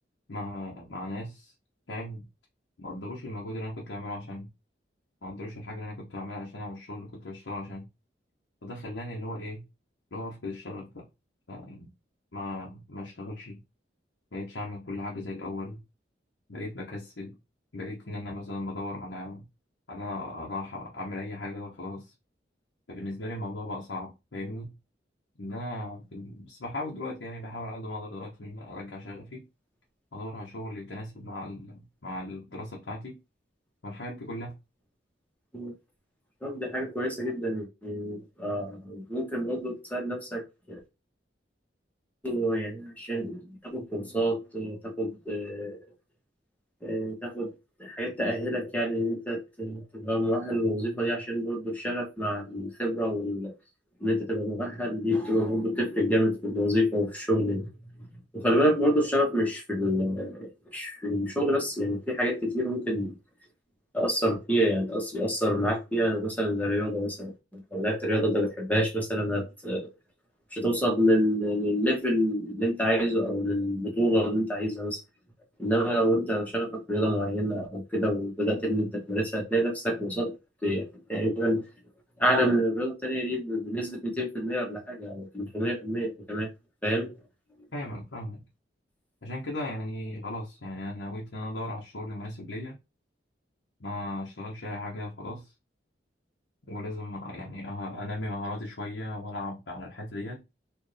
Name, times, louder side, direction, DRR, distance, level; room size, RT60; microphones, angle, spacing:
voice 1, 0.3-1.5 1.9-2.3 2.8-4.5 5.2-7.9 8.6-9.6 10.1-11.0 11.5-11.9 12.3-13.6 14.3-15.8 16.5-17.4 17.7-19.5 19.9-22.1 22.9-24.7 25.4-29.4 30.1-33.2 33.8-34.5 87.7-88.4 89.2-92.8 93.8-95.5 96.7-100.4, left 1 dB, 85° left, 1.0 m, -37 dB
voice 2, 36.4-40.8 42.2-45.8 46.8-47.5 47.8-53.5 54.0-57.7 58.3-63.1 63.9-69.9 70.5-75.0 75.6-80.3 80.6-81.6 82.2-86.5 86.8-87.1, equal, 10° left, 1.2 m, -28 dB
4.4 x 2.5 x 3.3 m
head